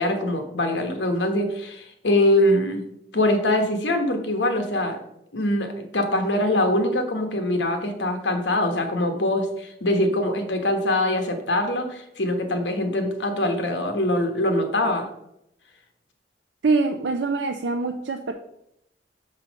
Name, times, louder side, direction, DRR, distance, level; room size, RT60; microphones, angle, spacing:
voice 1, 0.0-2.8 3.1-5.0 5.3-15.1, left 1 dB, 85° left, 5 dB, 1.2 m, -23 dB
voice 2, 16.6-18.3, right 3 dB, 85° right, 4 dB, 0.5 m, -24 dB
5.7 x 4.4 x 6.2 m, 0.80 s
head